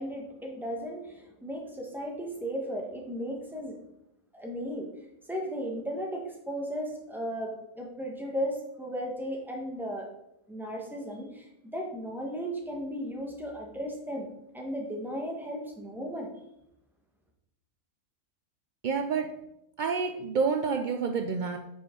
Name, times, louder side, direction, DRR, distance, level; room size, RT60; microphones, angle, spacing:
voice 1, 0.0-3.8 4.3-4.9 5.3-10.1 10.5-16.3, equal, ahead, 0 dB, 1.2 m, -35 dB
voice 2, 18.8-19.3 19.8-21.6, right 5 dB, 75° right, 5 dB, 0.4 m, -28 dB
8.7 x 5.3 x 3.7 m, 0.85 s
omnidirectional pair, 1.4 m